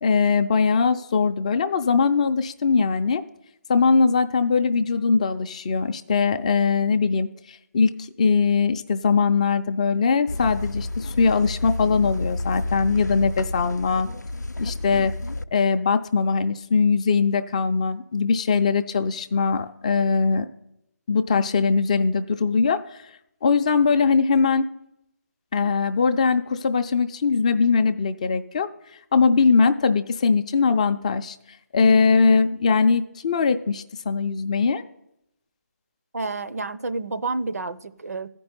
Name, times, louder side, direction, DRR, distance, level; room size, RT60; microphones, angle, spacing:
voice 1, 0.0-3.2 3.7-14.1 14.6-15.1 15.5-20.5 21.1-23.0 23.4-24.7 25.5-28.7 29.1-31.4 31.7-34.8, left 5 dB, 25° left, 8 dB, 0.5 m, -21 dB
sound 1, 10.3-15.4, left 2 dB, 90° left, 0.5 m, -30 dB
voice 2, 36.1-38.3, right 3 dB, 60° right, 12 dB, 0.7 m, -29 dB
14.0 x 5.3 x 9.4 m, 0.81 s
figure-of-eight pair, 150°, 9 cm